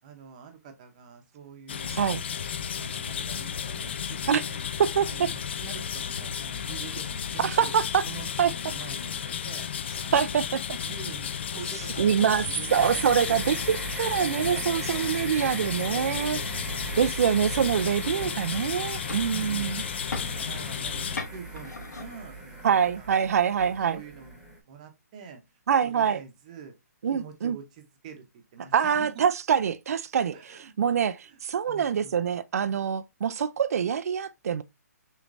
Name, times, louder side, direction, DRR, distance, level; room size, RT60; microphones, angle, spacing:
voice 1, 0.0-4.7 5.0-7.7 8.1-9.7 10.0-10.4 10.8-13.7 14.2-14.3 14.5-14.6 15.2-16.9 18.1-18.5 19.3-19.7 20.2-23.2 23.6-24.4 24.6-25.4 25.8-26.7 27.1-28.3 28.5-29.2 30.3-32.2, right 6 dB, 25° right, 0.8 m, -46 dB
sound 1, 1.7-21.2, left 8 dB, 40° left, 0.4 m, -33 dB
voice 2, 7.4-8.0 8.4-8.5 10.1-10.4 10.7-10.8 12.0-12.4 12.7-16.4 17.0-19.8 22.6-24.0 25.7-26.2 27.0-27.6 28.7-30.3 30.8-34.6, right 7 dB, 60° right, 0.4 m, -25 dB
sound 2, 12.7-24.6, right 2 dB, 5° right, 1.2 m, -39 dB
sound 3, 15.0-22.9, left 4 dB, 80° left, 1.6 m, -44 dB
6.2 x 3.1 x 2.6 m
hypercardioid pair, 170°, 9 cm